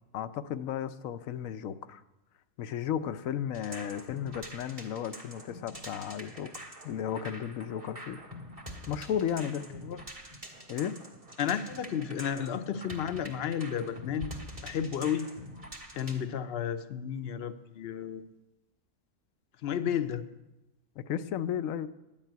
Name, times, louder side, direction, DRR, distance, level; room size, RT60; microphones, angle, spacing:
voice 1, 0.1-2.0 2.6-8.2 8.9-9.6 10.7-11.0 21.0-21.9, left 9 dB, 80° left, 12 dB, 1.0 m, -34 dB
sound 1, 3.5-16.2, equal, 25° right, 1.7 m, -46 dB
voice 2, 11.4-14.3 14.6-15.3 15.9-18.3 19.6-20.2, left 8 dB, 55° left, 10 dB, 0.9 m, -32 dB
9.9 x 7.4 x 9.3 m, 0.98 s
omnidirectional pair, 1.4 m